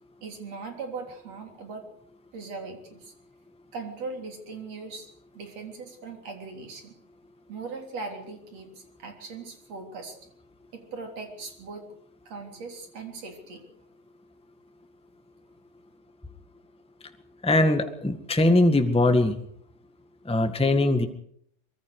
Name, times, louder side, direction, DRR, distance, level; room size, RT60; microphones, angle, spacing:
voice 1, 0.2-1.9 2.3-3.1 3.7-6.9 7.5-10.2 10.7-11.9 12.3-13.6, right 4 dB, 50° right, 4 dB, 4.6 m, -39 dB
voice 2, 17.4-19.4 20.2-21.0, left 2 dB, 5° left, 7 dB, 0.8 m, -21 dB
24.0 x 22.5 x 5.0 m, 0.65 s
omnidirectional pair, 3.8 m